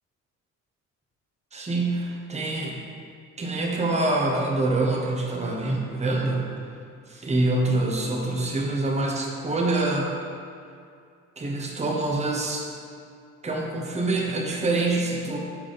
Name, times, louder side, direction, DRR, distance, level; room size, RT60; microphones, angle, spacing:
voice 1, 1.5-2.8 3.4-6.5 7.1-10.1 11.4-12.7 13.4-15.4, right 2 dB, 20° right, -1 dB, 1.0 m, -25 dB
5.9 x 4.9 x 4.1 m, 2.3 s
cardioid pair, 90°, 30 cm